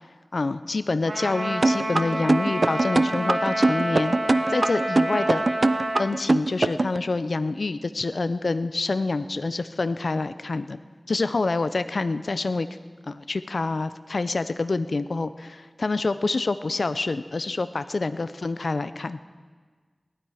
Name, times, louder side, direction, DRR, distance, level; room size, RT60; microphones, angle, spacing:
voice 1, 0.3-4.2 4.5-5.4 6.0-10.8 11.1-12.7 13.0-19.2, left 3 dB, 75° left, 12 dB, 0.5 m, -27 dB
Trumpet, 1.1-6.1, right 1 dB, 90° right, 2.3 m, -28 dB
sound 1, 1.6-7.0, right 2 dB, 60° right, 0.5 m, -21 dB
18.5 x 12.0 x 4.9 m, 1.5 s
wide cardioid pair, 40°, 0 cm